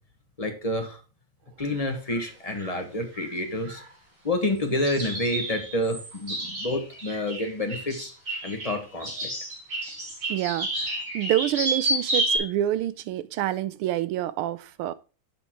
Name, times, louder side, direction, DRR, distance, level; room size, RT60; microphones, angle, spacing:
voice 1, 0.4-1.0 1.6-3.9 4.2-8.1 8.4-9.4, left 1 dB, 20° left, 1.1 m, -29 dB
sound 1, 1.7-1.8 2.1-2.2 2.6-2.8 3.1-3.3 3.6-3.8 4.8-12.4, right 1 dB, 55° right, 4.4 m, -30 dB
voice 2, 10.3-14.9, right 13 dB, 80° right, 1.5 m, -27 dB
7.5 x 6.2 x 4.6 m
omnidirectional pair, 2.4 m